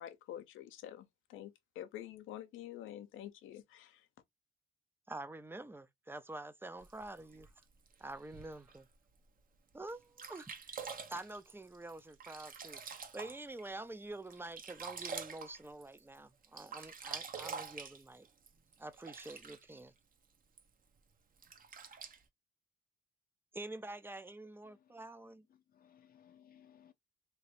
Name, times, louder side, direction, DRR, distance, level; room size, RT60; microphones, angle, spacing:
voice 1, 0.0-4.1, left 12 dB, 85° left, 0.6 m, -48 dB
voice 2, 5.1-7.5 8.0-8.9 9.7-18.3 18.8-19.9 23.5-25.4, right 2 dB, 10° right, 0.4 m, -47 dB
Sink (filling or washing), 6.8-8.8 9.4-9.5 9.9-10.0 10.2-13.7 14.1-16.2 16.4-19.8 20.6-20.7 21.4-22.2, right 5 dB, 45° right, 0.8 m, -46 dB
voice 3, 25.5-26.9, left 9 dB, 50° left, 0.5 m, -63 dB
3.2 x 2.9 x 2.9 m
cardioid pair, 90°, 20 cm